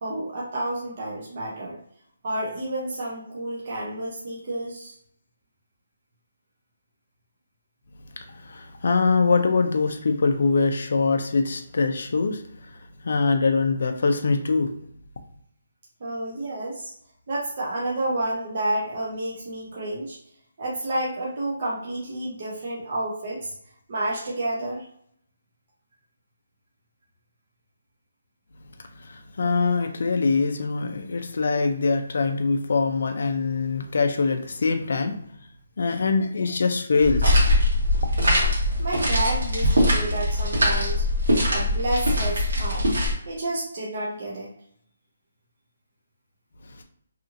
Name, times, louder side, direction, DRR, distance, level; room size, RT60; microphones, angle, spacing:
voice 1, 0.0-1.8 2.2-4.9 16.0-16.9 17.3-20.2 20.6-23.5 23.9-24.8 38.8-42.8 43.3-44.5, right 1 dB, 35° right, -5 dB, 0.6 m, -30 dB
voice 2, 8.4-12.4 12.7-12.8 13.0-14.7 29.0-35.2 35.8-37.5, left 4 dB, 55° left, 5 dB, 0.4 m, -23 dB
sound 1, 37.0-43.1, left 1 dB, 80° right, 1.3 m, -22 dB
2.8 x 2.5 x 2.5 m, 0.69 s
hypercardioid pair, 175°, 0 cm